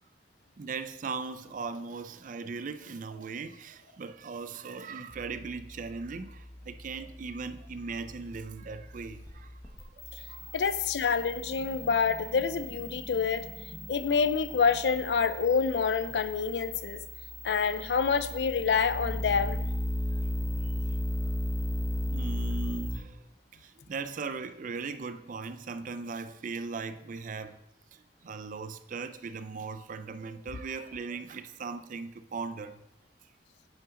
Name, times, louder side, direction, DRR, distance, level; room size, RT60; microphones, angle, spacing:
voice 1, 0.6-9.5 9.9-10.0 10.3-10.5 17.5-17.8 20.6-20.7 22.1-23.2 23.5-27.6 27.9-32.8, right 4 dB, 50° right, 0.4 m, -39 dB
sound 1, 5.1-23.0, left 1 dB, 15° left, 1.0 m, -37 dB
voice 2, 10.5-17.0 17.4-19.7, left 5 dB, 70° left, 0.4 m, -27 dB
8.7 x 5.6 x 3.7 m
head